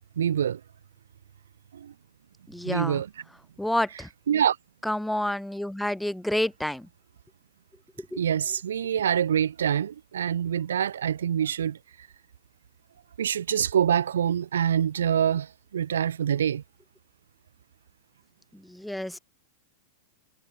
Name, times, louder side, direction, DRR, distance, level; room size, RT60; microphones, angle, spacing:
voice 1, 0.2-0.6 1.7-1.9 2.6-3.1 4.3-4.6 8.1-11.8 13.2-16.6, right 9 dB, 80° right, 0.7 m, -25 dB
voice 2, 2.5-3.0 3.6-4.1 4.8-6.9 8.1-8.2 18.7-19.2, left 1 dB, 5° left, 0.9 m, -29 dB
hypercardioid pair, 105°, 0 cm